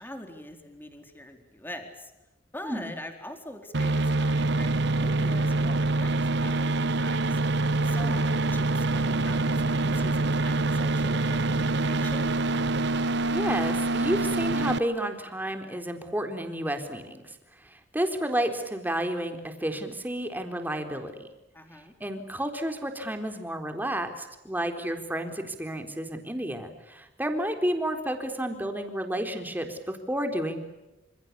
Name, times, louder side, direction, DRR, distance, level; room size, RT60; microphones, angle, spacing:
voice 1, 0.0-2.1 2.5-7.4 7.8-12.3 21.5-21.9, left 1 dB, 10° left, 5 dB, 4.1 m, -43 dB
sound 1, 3.7-14.8, right 2 dB, 65° right, 1.0 m, -25 dB
voice 2, 13.3-21.3 22.0-30.6, right 1 dB, 10° right, 6 dB, 4.0 m, -31 dB
29.5 x 27.5 x 7.0 m, 0.99 s
head